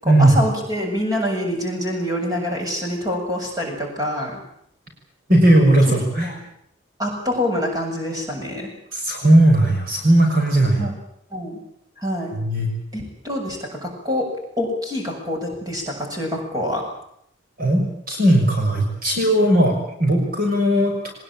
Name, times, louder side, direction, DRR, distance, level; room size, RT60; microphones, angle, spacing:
voice 1, 0.0-4.4 6.2-6.4 7.0-8.7 10.8-10.9 11.3-11.6 12.0-12.3 12.9-14.3 14.6-16.8, left 1 dB, 20° right, 0 dB, 7.5 m, -26 dB
voice 2, 5.3-6.3 8.9-10.9 12.3-12.7 17.6-19.7 20.0-21.1, right 1 dB, 50° right, 1 dB, 5.8 m, -17 dB
23.0 x 21.0 x 8.9 m, 0.72 s
head